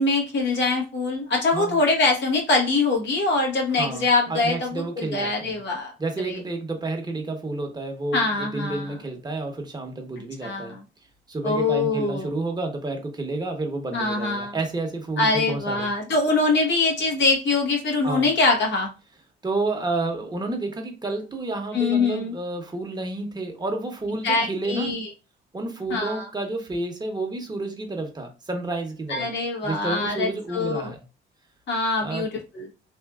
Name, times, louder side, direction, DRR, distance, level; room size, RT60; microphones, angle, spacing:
voice 1, 0.0-5.9 6.2-6.4 8.1-9.0 10.4-10.8 11.4-12.3 13.9-14.6 15.2-18.9 21.7-22.3 24.2-25.1 25.9-26.3 29.1-30.9 31.7-32.3 32.5-32.7, left 3 dB, 65° left, 1.2 m, -23 dB
voice 2, 3.7-5.6 6.0-10.8 11.3-15.9 18.0-18.3 19.4-25.0 25.5-29.3 29.6-31.0 32.0-32.3, right 2 dB, 20° right, 0.9 m, -30 dB
3.4 x 2.5 x 2.3 m
cardioid pair, 90°, 20 cm